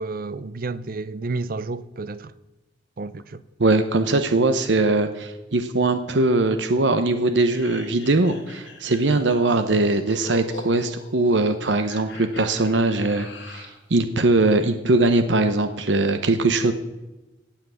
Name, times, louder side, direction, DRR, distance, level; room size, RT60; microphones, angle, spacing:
voice 1, 0.0-2.3 3.0-3.4, right 3 dB, 50° right, 0.6 m, -31 dB
voice 2, 3.6-16.7, right 2 dB, 75° right, 0.9 m, -21 dB
sound 1, 7.2-13.8, left 3 dB, 75° left, 3.3 m, -42 dB
17.0 x 5.9 x 8.4 m
head